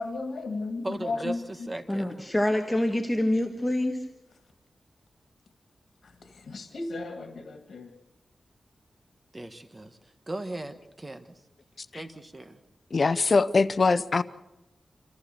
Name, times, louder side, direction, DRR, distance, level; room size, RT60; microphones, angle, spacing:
voice 1, 0.0-1.7 6.0-7.9, left 3 dB, 80° left, 6 dB, 1.9 m, -35 dB
voice 2, 0.8-1.3 1.7-2.1 9.3-10.0 10.3-11.3 11.9-12.6, right 1 dB, 25° right, 9 dB, 1.4 m, -37 dB
voice 3, 1.9-4.1, left 1 dB, 15° left, 3 dB, 1.5 m, -26 dB
voice 4, 12.9-14.2, left 4 dB, 50° left, 15 dB, 0.7 m, -23 dB
26.5 x 15.0 x 6.9 m, 0.95 s
wide cardioid pair, 100°, 0 cm